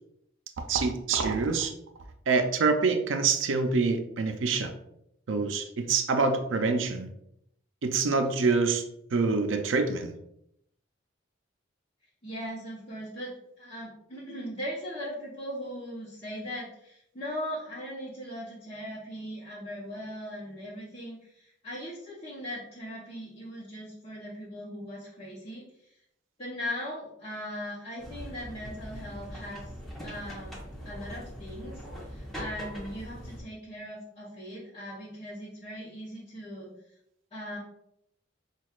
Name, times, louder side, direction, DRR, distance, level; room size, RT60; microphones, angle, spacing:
voice 1, 0.7-1.7 2.3-4.7 5.3-7.1 7.8-8.8 9.1-10.1, right 4 dB, 85° right, 6 dB, 0.5 m, -26 dB
voice 2, 12.2-25.9 26.4-29.7 30.0-36.7 37.3-37.6, equal, 30° left, -9 dB, 0.9 m, -39 dB
sound 1, 28.0-33.4, equal, ahead, 0.8 m, -41 dB
6.0 x 2.3 x 2.4 m, 0.77 s
head